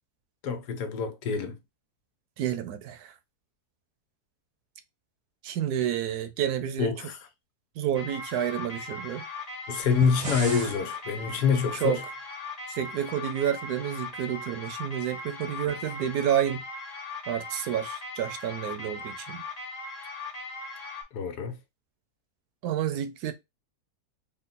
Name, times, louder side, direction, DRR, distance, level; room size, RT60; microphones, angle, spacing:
voice 1, 0.4-1.6 6.8-7.2 9.7-12.0 21.1-21.6, left 6 dB, 80° left, 1.3 m, -26 dB
voice 2, 2.4-3.2 5.4-6.9 7.8-9.3 11.7-12.0 12.7-16.6 17.3-19.4 22.6-23.3, right 10 dB, 75° right, 1.1 m, -29 dB
sound 1, 7.9-21.0, left 3 dB, 40° left, 0.6 m, -39 dB
sound 2, 9.8-10.8, right 3 dB, 30° right, 0.7 m, -35 dB
3.9 x 2.2 x 4.1 m
omnidirectional pair, 1.7 m